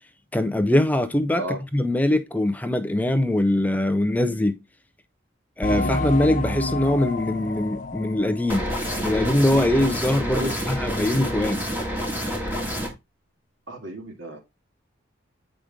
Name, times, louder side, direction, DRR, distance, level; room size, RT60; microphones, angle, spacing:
voice 1, 0.3-1.4 1.7-4.6 5.6-8.7 9.0-11.6, left 1 dB, 10° left, 0.5 m, -22 dB
sound 1, 5.6-9.9 10.2-10.3 10.9-11.0, left 2 dB, 40° left, 0.7 m, -30 dB
sound 2, 8.5-12.9, equal, 10° right, 1.9 m, -28 dB
voice 2, 13.7-14.4, equal, 75° right, 2.2 m, -32 dB
7.5 x 5.0 x 3.5 m
head